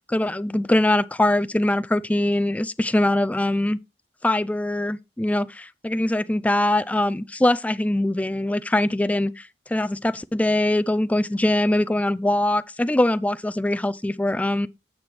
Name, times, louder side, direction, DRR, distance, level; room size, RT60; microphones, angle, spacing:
voice 1, 0.1-3.8 4.2-14.7, left 1 dB, 10° left, 0.3 m, -22 dB
8.7 x 3.2 x 5.9 m
head